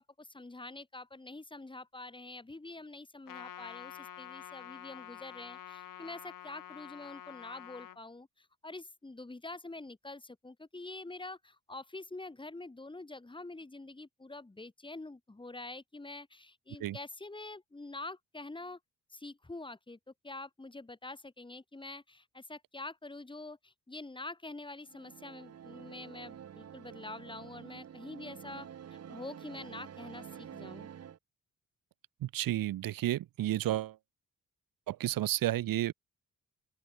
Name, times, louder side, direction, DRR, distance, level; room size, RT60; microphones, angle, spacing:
voice 1, 0.0-18.8 19.1-30.9, left 2 dB, 15° left, 4.5 m, -46 dB
Trumpet, 3.3-8.0, left 11 dB, 75° left, 3.1 m, -48 dB
sound 1, 24.8-31.2, right 9 dB, 50° right, 1.2 m, -48 dB
voice 2, 32.2-33.9 34.9-35.9, right 14 dB, 90° right, 0.9 m, -31 dB
open air
wide cardioid pair, 140°, 33 cm